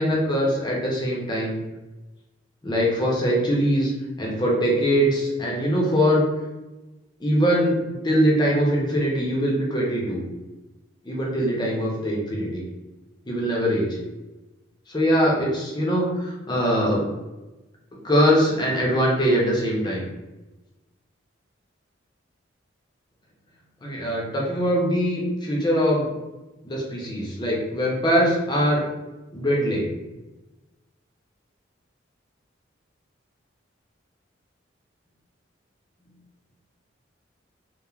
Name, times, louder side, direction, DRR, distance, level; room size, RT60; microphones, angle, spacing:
voice 1, 0.0-1.6 2.6-3.9 4.2-6.2 7.2-7.7 8.0-10.2 11.0-12.6 13.3-14.0 14.9-17.1 18.0-20.0 23.8-26.1 26.6-28.8 29.3-29.9, equal, 20° left, -3 dB, 0.5 m, -22 dB
3.0 x 2.0 x 2.3 m, 1.1 s
head